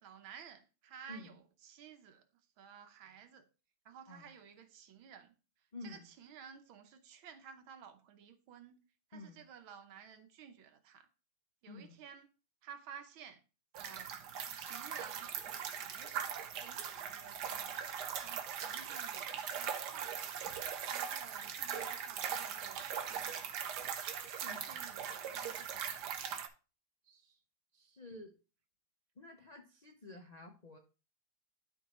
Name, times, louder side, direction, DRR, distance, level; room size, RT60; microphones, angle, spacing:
voice 1, 0.0-2.3 2.6-3.5 3.9-5.3 5.8-8.8 9.1-11.1 11.6-12.3 12.6-13.4 13.8-14.2 14.5-16.3 16.6-17.8 18.2-20.2 20.9-23.5 24.4-26.0, right 7 dB, 80° right, 1.7 m, -54 dB
voice 2, 5.7-6.1 9.1-9.4 11.7-12.0 24.2-24.8 27.0-27.4 27.7-28.3 29.2-30.8, left 2 dB, 60° left, 0.4 m, -51 dB
sound 1, 13.7-26.5, right 8 dB, 65° right, 1.3 m, -40 dB
11.5 x 4.7 x 3.0 m
omnidirectional pair, 2.2 m